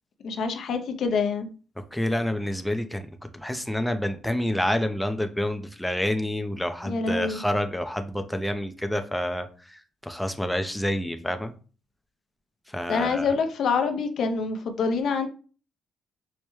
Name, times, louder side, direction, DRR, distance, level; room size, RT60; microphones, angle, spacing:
voice 1, 0.2-1.5 6.9-7.4 12.9-15.3, left 5 dB, 65° left, 7 dB, 0.5 m, -26 dB
voice 2, 1.9-3.1 3.3-11.5 12.7-13.3, left 1 dB, 5° left, 7 dB, 0.4 m, -28 dB
4.7 x 2.1 x 3.1 m, 0.38 s
cardioid pair, 90°, 0 cm